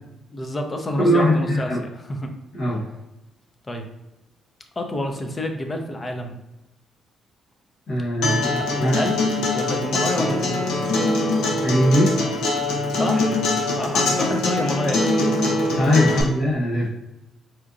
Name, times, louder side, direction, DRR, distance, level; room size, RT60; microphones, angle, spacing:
voice 1, 0.3-2.3 3.7-3.8 4.8-6.4 8.4-9.2 9.5-10.9 12.9-13.4 13.8-15.2 16.0-16.3, left 1 dB, 25° left, 4 dB, 0.6 m, -29 dB
voice 2, 1.0-1.8 2.5-2.8 7.9-9.0 11.6-12.1 15.7-16.9, equal, 60° left, -6 dB, 1.0 m, -20 dB
Acoustic guitar, 8.2-16.2, left 2 dB, 90° left, 0.7 m, -22 dB
4.2 x 2.6 x 2.5 m, 0.94 s
cardioid pair, 90°, 0 cm